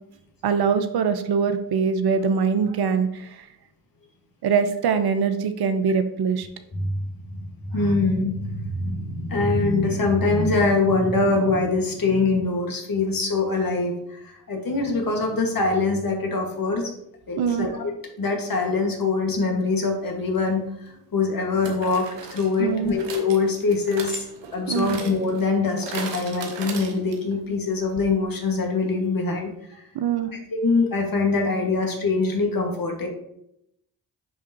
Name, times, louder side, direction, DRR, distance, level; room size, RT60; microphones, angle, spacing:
voice 1, 0.4-3.5 4.4-6.5 17.4-17.7 22.6-22.9 24.7-25.0 29.9-30.3, right 6 dB, 60° right, 9 dB, 0.7 m, -23 dB
voice 2, 7.3-16.9 17.3-17.9 18.2-24.3 24.5-29.8 30.5-33.1, left 3 dB, 50° left, 2 dB, 1.7 m, -23 dB
sound 1, 20.3-20.5 21.6-27.4 27.7-27.8 28.0-28.1, right 5 dB, 75° right, 1.1 m, -38 dB
9.9 x 3.6 x 2.9 m, 0.78 s
hypercardioid pair, 40°, 44 cm